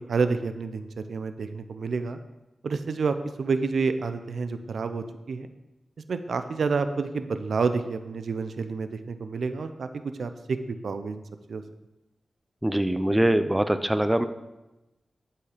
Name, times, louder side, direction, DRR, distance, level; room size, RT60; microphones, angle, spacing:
voice 1, 0.0-2.2 2.6-5.5 6.1-11.2 11.5-11.6, right 4 dB, 80° right, 9 dB, 0.6 m, -29 dB
voice 2, 12.6-14.2, right 1 dB, 10° right, 10 dB, 0.6 m, -23 dB
12.0 x 5.6 x 5.0 m, 1.0 s
wide cardioid pair, 95°, 0 cm